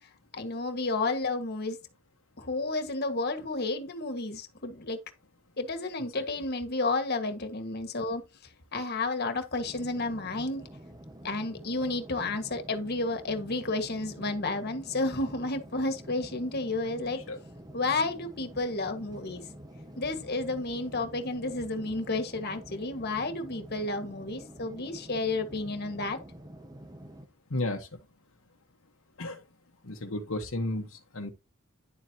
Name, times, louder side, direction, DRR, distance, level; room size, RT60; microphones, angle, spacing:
voice 1, 0.3-1.8 2.4-5.0 5.6-8.2 8.7-10.7 11.2-17.2 17.7-19.4 20.0-26.2, left 2 dB, 50° left, 1.6 m, -31 dB
sound 1, 9.6-27.3, right 1 dB, 20° right, 1.2 m, -47 dB
voice 2, 27.5-27.9 29.2-29.4 29.8-31.3, left 2 dB, 65° left, 1.2 m, -33 dB
10.5 x 7.6 x 2.8 m
head